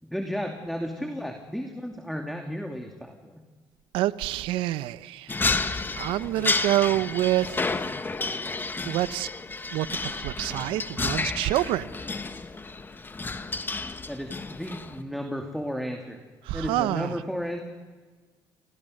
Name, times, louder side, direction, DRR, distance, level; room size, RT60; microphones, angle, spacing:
voice 1, 0.0-3.4 14.1-16.2 16.5-17.6, equal, ahead, 2.6 m, -33 dB
voice 2, 3.9-5.6 6.0-7.9 8.8-9.3 9.7-11.9 16.4-17.1, right 15 dB, 90° right, 0.7 m, -27 dB
sound 1, 5.3-15.0, left 3 dB, 25° left, 1.4 m, -31 dB
29.0 x 20.5 x 6.6 m
cardioid pair, 90°, 9 cm